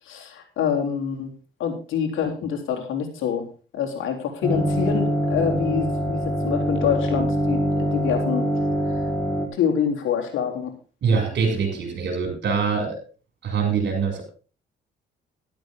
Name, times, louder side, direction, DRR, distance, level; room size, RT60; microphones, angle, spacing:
voice 1, 0.1-1.3 1.6-3.5 3.7-8.4 9.5-10.7, left 7 dB, 85° left, 2 dB, 3.7 m, -26 dB
sound 1, 4.4-9.5, equal, 5° left, 4.0 m, -24 dB
voice 2, 11.0-13.0 13.4-14.2, right 5 dB, 60° right, 5 dB, 7.2 m, -23 dB
13.0 x 12.5 x 3.8 m, 0.36 s
cardioid pair, 90°, 20 cm